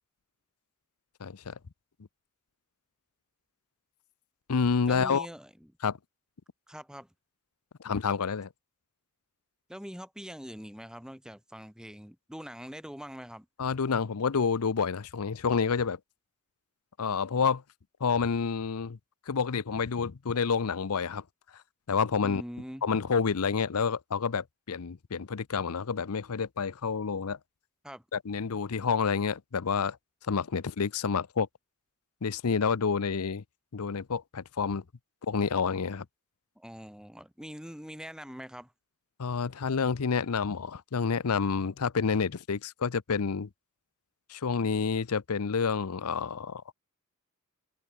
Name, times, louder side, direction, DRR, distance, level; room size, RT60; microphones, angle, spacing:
voice 1, 1.2-1.5 4.5-5.3 5.8-6.0 7.8-8.5 13.6-16.0 17.0-17.6 18.0-19.0 19.3-21.2 21.9-22.4 22.8-27.4 28.1-30.0 30.2-31.5 32.2-33.4 33.7-34.8 35.3-36.1 39.2-43.5 44.3-46.6, left 5 dB, 80° left, 0.7 m, -29 dB
voice 2, 4.9-5.7 6.7-7.1 9.7-13.5 22.2-22.9 27.8-28.0 36.6-38.7, equal, 5° right, 2.8 m, -43 dB
head